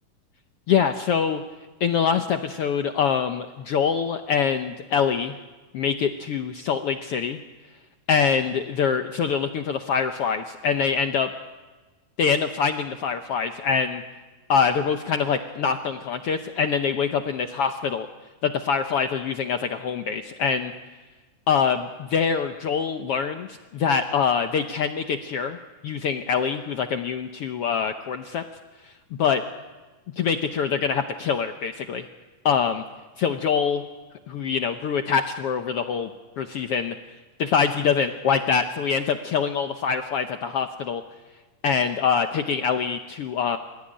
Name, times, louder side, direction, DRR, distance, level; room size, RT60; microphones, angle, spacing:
voice 1, 0.7-1.4 1.8-5.3 5.7-7.4 8.1-11.3 12.2-14.0 14.5-18.1 18.4-20.7 21.5-25.6 25.8-28.4 29.2-29.4 30.2-32.0 32.4-32.8 33.2-33.8 34.3-36.1 36.4-36.9 37.4-41.0 41.6-43.6, left 6 dB, 80° left, 7 dB, 1.3 m, -24 dB
28.0 x 15.5 x 10.0 m, 1.3 s
omnidirectional pair, 3.9 m